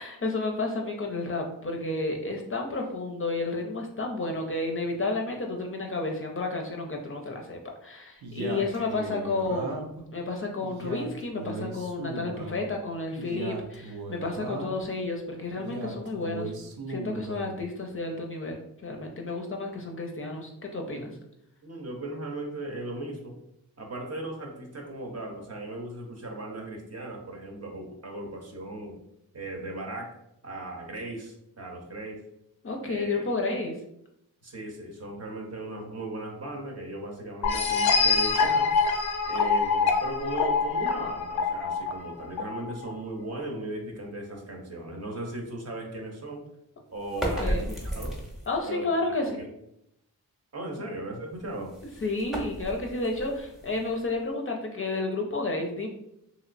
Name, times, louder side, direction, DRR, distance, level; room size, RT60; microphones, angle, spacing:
voice 1, 0.0-16.5 16.9-21.1 32.6-33.8 47.4-47.7 48.5-49.4 52.0-55.9, left 2 dB, 35° left, 2 dB, 0.5 m, -31 dB
Male speech man speaking, 8.2-10.0 10.6-12.6 13.2-14.9 15.6-17.5, right 2 dB, 80° right, 0.6 m, -37 dB
voice 2, 8.7-9.1 20.9-21.2 21.6-23.4 23.8-29.0 29.3-30.1 30.4-32.2 32.8-33.4 34.4-38.7 39.2-46.4 46.9-48.2 48.7-48.9 49.2-49.5 50.5-51.7, right 1 dB, 45° right, 1 dB, 0.7 m, -37 dB
sound 1, 37.4-42.9, left 4 dB, 90° left, 0.5 m, -25 dB
sound 2, 47.0-48.6 51.3-54.3, equal, ahead, 0.7 m, -34 dB
3.0 x 2.9 x 2.5 m, 0.78 s
wide cardioid pair, 115°, 37 cm